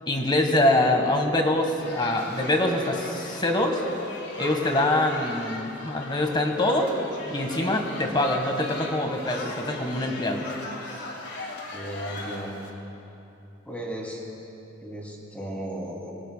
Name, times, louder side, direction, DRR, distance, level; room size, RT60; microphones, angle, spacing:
voice 1, 0.1-3.8 4.4-6.9 7.3-10.5, left 1 dB, 25° left, 3 dB, 1.5 m, -24 dB
sound 1, 1.8-12.7, left 2 dB, 60° left, 2.1 m, -39 dB
voice 2, 11.7-12.5 13.7-14.2 14.8-16.1, right 1 dB, 10° left, -3 dB, 2.9 m, -35 dB
24.0 x 22.0 x 2.3 m, 2.9 s
head